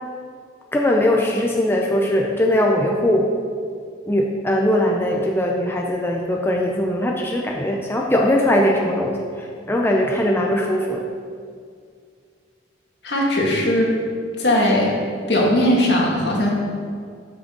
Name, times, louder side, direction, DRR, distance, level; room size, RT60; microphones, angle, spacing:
voice 1, 0.7-3.3 4.1-11.0, left 1 dB, 10° left, -1 dB, 0.6 m, -20 dB
voice 2, 13.0-13.9 14.4-14.9 15.3-16.5, left 1 dB, 65° left, -3 dB, 2.0 m, -18 dB
13.0 x 6.2 x 3.9 m, 2.2 s
head